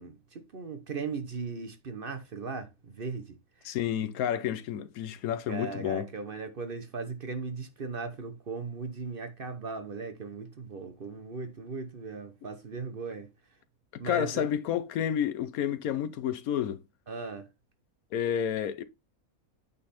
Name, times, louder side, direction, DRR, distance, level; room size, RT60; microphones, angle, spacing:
voice 1, 0.0-3.7 5.5-13.3 14.0-14.4 17.1-17.5, right 4 dB, 45° right, 0.9 m, -38 dB
voice 2, 3.6-6.1 14.0-16.8 18.1-18.8, left 9 dB, 75° left, 1.1 m, -30 dB
8.7 x 4.0 x 4.2 m
omnidirectional pair, 1.5 m